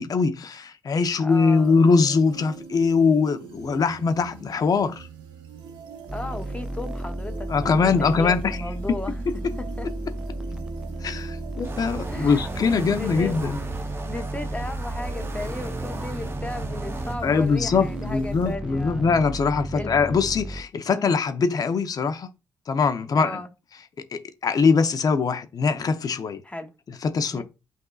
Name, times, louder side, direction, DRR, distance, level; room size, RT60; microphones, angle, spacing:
voice 1, 0.0-5.1 7.5-8.6 11.0-13.6 17.2-22.3 22.7-23.4 24.1-26.4 27.0-27.4, left 5 dB, 55° left, 0.7 m, -22 dB
voice 2, 1.2-1.8 6.1-9.1 9.8-9.9 12.1-12.4 13.0-13.7 14.1-19.1 19.7-20.0 20.9-21.1 23.2-23.5 26.4-26.7 27.3-27.4, left 2 dB, 15° left, 0.9 m, -35 dB
sound 1, 1.3-18.6, right 6 dB, 85° right, 0.7 m, -42 dB
sound 2, 6.1-20.6, right 1 dB, 10° right, 0.4 m, -34 dB
sound 3, 11.6-17.2, right 3 dB, 30° right, 0.8 m, -36 dB
7.9 x 2.7 x 2.3 m
supercardioid pair, 55°, 8 cm